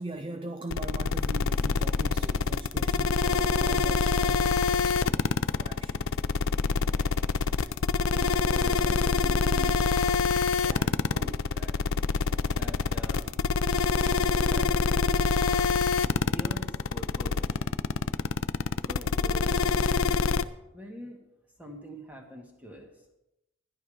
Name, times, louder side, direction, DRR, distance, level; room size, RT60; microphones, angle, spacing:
voice 1, 0.0-6.2, right 2 dB, 25° right, 0.4 m, -41 dB
sound 1, 0.7-20.4, left 5 dB, 85° left, 0.5 m, -25 dB
voice 2, 8.1-10.3 10.6-11.8 12.5-13.5 14.2-15.3 16.2-17.7 18.9-20.3 20.7-21.2 21.6-22.9, equal, 10° right, 1.9 m, -44 dB
13.5 x 10.5 x 5.0 m
head